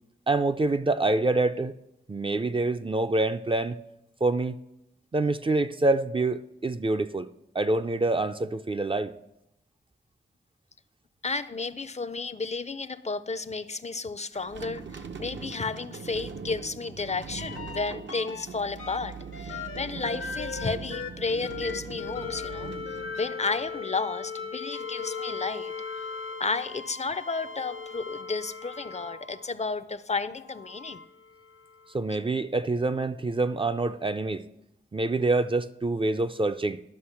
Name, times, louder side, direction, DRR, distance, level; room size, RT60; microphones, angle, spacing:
voice 1, 0.3-1.8 2.1-3.8 4.2-4.6 5.1-7.3 7.5-9.1 31.9-34.5 34.9-36.8, right 2 dB, 25° right, 0.4 m, -26 dB
voice 2, 11.2-14.8 15.2-22.7 23.2-25.7 26.4-31.0, left 4 dB, 35° left, 0.4 m, -32 dB
sound 1, 14.3-23.8, right 5 dB, 65° right, 0.7 m, -41 dB
sound 2, 17.4-18.5 18.8-29.6 30.4-32.0 33.7-33.8, left 5 dB, 85° left, 0.9 m, -38 dB
11.5 x 6.1 x 5.8 m
wide cardioid pair, 70°, 21 cm